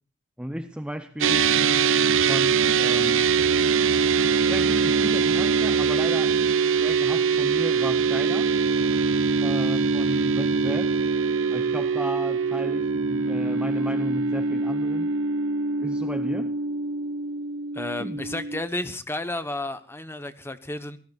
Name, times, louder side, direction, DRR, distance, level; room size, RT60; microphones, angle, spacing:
voice 1, 0.4-1.5 2.3-3.3 4.5-6.3 6.8-8.5 9.4-11.0 11.5-15.1 15.8-16.5 18.0-18.2, equal, 5° right, 0.6 m, -34 dB
sound 1, 1.2-18.6, right 5 dB, 65° right, 0.7 m, -23 dB
voice 2, 17.7-21.0, left 2 dB, 10° left, 1.0 m, -32 dB
26.5 x 17.5 x 2.5 m
head